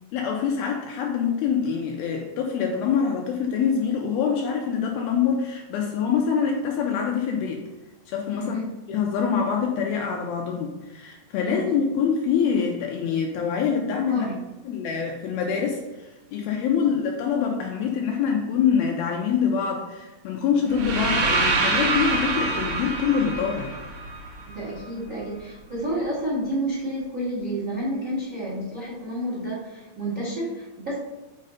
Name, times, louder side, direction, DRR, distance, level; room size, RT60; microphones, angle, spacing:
voice 1, 0.1-7.7 8.1-8.6 8.9-14.3 14.7-23.7, left 7 dB, 85° left, 1 dB, 2.3 m, -25 dB
voice 2, 8.4-8.7 11.5-11.8 14.1-14.3 16.6-16.8 24.5-31.0, right 1 dB, 55° right, -6 dB, 0.9 m, -30 dB
sound 1, 20.7-24.8, right 3 dB, 75° right, 1.9 m, -25 dB
6.5 x 4.1 x 4.0 m, 1.1 s
omnidirectional pair, 4.8 m